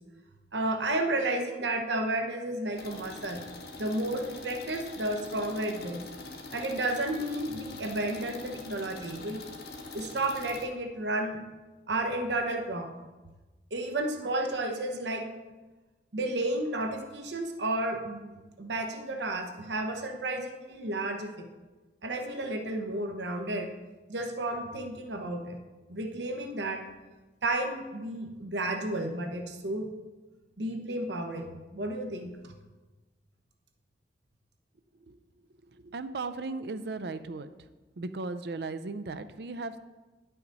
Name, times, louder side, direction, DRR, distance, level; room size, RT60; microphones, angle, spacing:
voice 1, 0.5-3.4 3.8-6.0 6.5-9.4 9.9-11.4 11.9-12.9 13.7-15.3 16.1-21.3 22.0-23.7 24.1-25.6 25.9-26.8 27.4-29.9 30.6-32.5, right 1 dB, 90° right, 4 dB, 1.0 m, -32 dB
sound 1, 2.7-10.6, left 3 dB, 65° left, 1.0 m, -44 dB
voice 2, 35.8-37.5 38.0-39.8, right 3 dB, 70° right, 11 dB, 0.5 m, -36 dB
10.5 x 5.8 x 4.0 m, 1.2 s
head